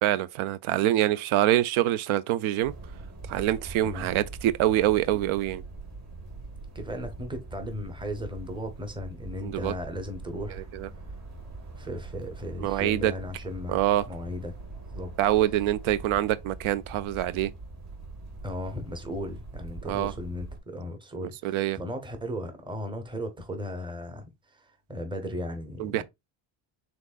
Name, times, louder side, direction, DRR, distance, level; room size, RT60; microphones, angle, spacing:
voice 1, 0.0-2.7 3.3-5.6 9.4-9.7 10.7-10.9 12.6-13.1 13.7-14.0 15.2-17.5 19.9-20.1 21.4-21.8 25.8-26.0, right 13 dB, 75° right, 0.5 m, -25 dB
sound 1, 2.6-20.6, right 3 dB, 35° right, 2.2 m, -42 dB
voice 2, 6.7-10.7 11.7-13.8 14.1-14.5 14.9-15.1 18.4-26.0, left 1 dB, 10° right, 0.8 m, -36 dB
6.1 x 3.6 x 2.4 m
cardioid pair, 165°, 49 cm